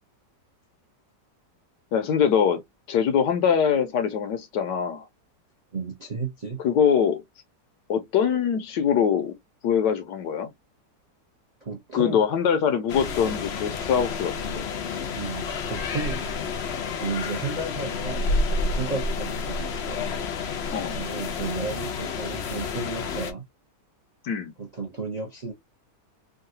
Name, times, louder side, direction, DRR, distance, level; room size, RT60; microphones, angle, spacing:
voice 1, 1.9-2.6 2.9-5.1 6.6-7.2 7.9-9.3 9.6-10.5 11.9-14.7 20.7-21.0 24.2-24.5, left 7 dB, 75° left, 1.4 m, -23 dB
voice 2, 5.7-6.6 11.6-12.2 13.2-13.5 13.8-13.9 15.2-18.3 18.7-20.0 20.9-23.4 24.6-25.5, right 3 dB, 35° right, 0.6 m, -33 dB
sound 1, 12.9-23.3, left 4 dB, 60° left, 0.7 m, -30 dB
3.7 x 2.3 x 2.6 m
omnidirectional pair, 1.8 m